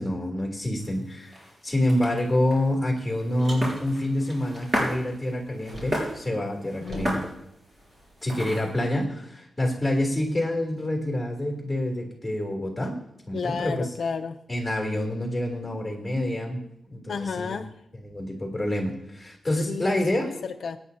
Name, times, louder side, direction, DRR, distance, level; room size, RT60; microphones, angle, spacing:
voice 1, 0.0-1.4 1.6-7.2 8.2-13.0 13.3-13.9 14.5-16.6 16.9-17.6 18.0-20.3, left 1 dB, 10° left, 1 dB, 3.4 m, -27 dB
sound 1, 0.8-8.9, equal, 30° right, 6.0 m, -35 dB
Car, 3.4-6.2 6.5-8.3, equal, 45° right, 5.2 m, -45 dB
voice 2, 6.8-7.1 13.3-14.4 17.1-17.7 19.7-20.8, left 5 dB, 75° left, 6 dB, 0.6 m, -32 dB
24.0 x 9.7 x 2.8 m, 0.79 s
wide cardioid pair, 120°, 0 cm